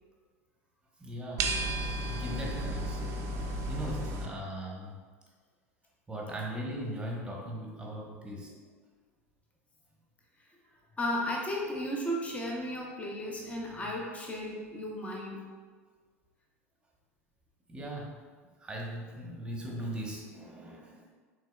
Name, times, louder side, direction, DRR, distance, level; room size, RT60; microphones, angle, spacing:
voice 1, 1.0-1.5 2.1-3.2 3.7-5.0 6.1-8.5 17.7-18.1 18.6-21.1, equal, 10° right, -2 dB, 1.0 m, -39 dB
sound 1, 1.4-4.3, right 1 dB, 40° right, 0.5 m, -33 dB
voice 2, 11.0-15.4, left 1 dB, 15° left, -2 dB, 0.8 m, -34 dB
5.9 x 3.8 x 2.3 m, 1.5 s
figure-of-eight pair, 75°, 8 cm